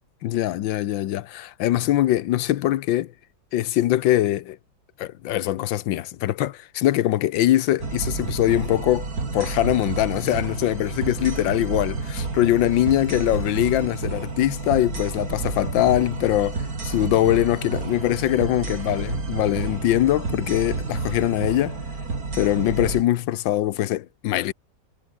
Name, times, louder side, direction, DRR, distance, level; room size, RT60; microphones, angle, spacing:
voice 1, 0.2-3.1 3.5-4.6 5.0-21.8 22.3-24.5, left 13 dB, 75° left, 1.5 m, -22 dB
sound 1, 7.8-23.0, right 4 dB, 50° right, 3.7 m, -30 dB
omnidirectional pair, 2.1 m